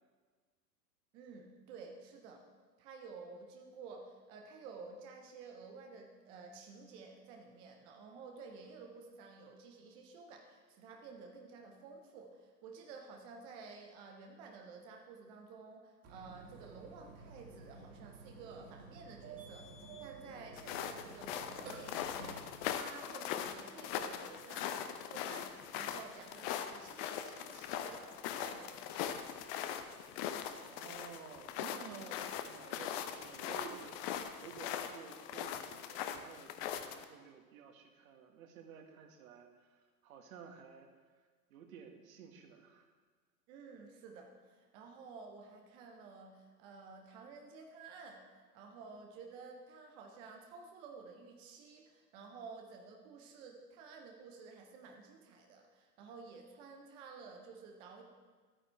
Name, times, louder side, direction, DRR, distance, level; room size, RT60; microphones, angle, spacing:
voice 1, 1.1-2.4 2.8-29.1 43.5-58.0, right 4 dB, 10° right, 2 dB, 0.3 m, -52 dB
Burping eructation, 16.0-22.4, right 3 dB, 30° right, 2.1 m, -52 dB
sound 1, 20.6-37.0, left 9 dB, 35° left, 0.8 m, -41 dB
voice 2, 30.6-40.9 41.5-42.9, right 7 dB, 55° right, 5 dB, 1.6 m, -53 dB
12.0 x 9.0 x 4.3 m, 1.5 s
hypercardioid pair, 105°, 49 cm